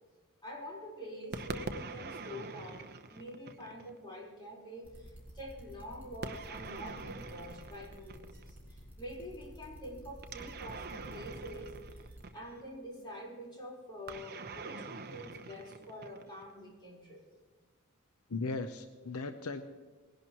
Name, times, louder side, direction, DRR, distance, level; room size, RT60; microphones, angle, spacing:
voice 1, 0.4-12.0 12.3-17.2, equal, 20° left, -3 dB, 4.4 m, -46 dB
sound 1, 1.3-4.0 6.2-8.6 10.2-12.7 14.1-16.5, right 3 dB, 45° right, 0.9 m, -44 dB
sound 2, 4.8-12.3, right 1 dB, 10° right, 4.3 m, -51 dB
voice 2, 18.3-19.6, left 3 dB, 75° left, 8 dB, 0.8 m, -37 dB
20.0 x 11.5 x 3.1 m, 1.3 s
head